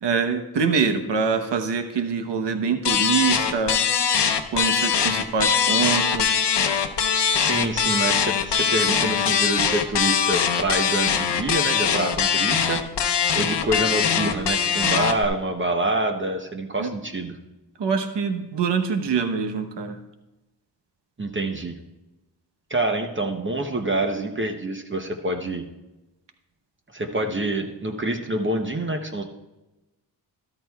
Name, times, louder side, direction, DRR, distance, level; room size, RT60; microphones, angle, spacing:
voice 1, 0.0-3.8 4.5-6.4 16.8-16.9 17.8-20.0, right 5 dB, 75° right, 7 dB, 1.0 m, -24 dB
sound 1, 2.8-15.2, left 7 dB, 70° left, 0.8 m, -22 dB
voice 2, 7.4-12.8 13.3-17.3 21.2-21.7 22.7-25.6 26.9-29.2, right 2 dB, 30° right, 4 dB, 0.8 m, -26 dB
13.0 x 12.5 x 2.3 m, 1.0 s
wide cardioid pair, 120°, 42 cm